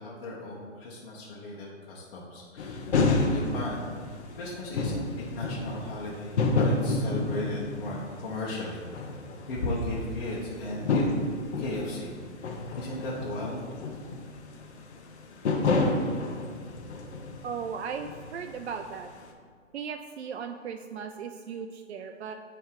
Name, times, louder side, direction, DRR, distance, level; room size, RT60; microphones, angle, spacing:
voice 1, 0.0-8.8 9.5-11.0 11.6-12.1 12.4-13.6, left 2 dB, 45° left, -5 dB, 1.3 m, -36 dB
sound 1, 2.6-17.7 17.9-18.9, left 3 dB, 60° left, 1.1 m, -29 dB
voice 2, 17.4-19.1 19.7-22.3, right 6 dB, 60° right, 6 dB, 0.5 m, -37 dB
9.4 x 3.3 x 4.9 m, 2.1 s
figure-of-eight pair, 130°, 37 cm